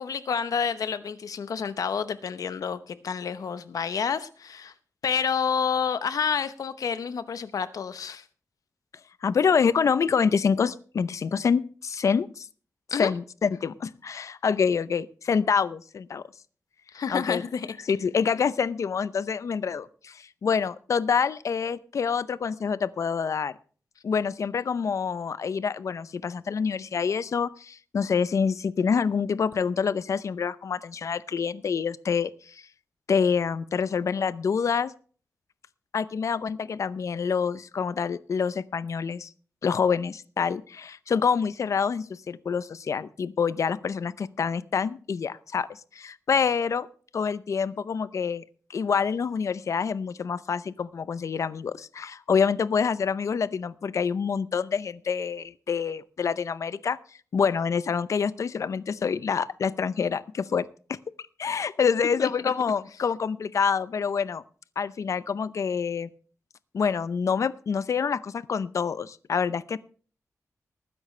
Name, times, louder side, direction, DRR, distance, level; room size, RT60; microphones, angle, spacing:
voice 1, 0.0-4.7 5.0-8.2 12.9-13.1 16.9-17.7 62.2-62.3, left 6 dB, 85° left, 13 dB, 0.9 m, -29 dB
voice 2, 9.2-12.5 13.0-16.2 17.1-17.4 17.9-23.5 24.0-32.6 33.1-34.9 35.9-39.3 39.6-46.9 47.1-48.4 48.7-57.0 57.3-61.0 61.4-64.4 64.8-66.1 66.7-69.8, left 6 dB, 60° left, 17 dB, 0.6 m, -26 dB
19.5 x 9.9 x 3.2 m, 0.42 s
wide cardioid pair, 160°, 6 cm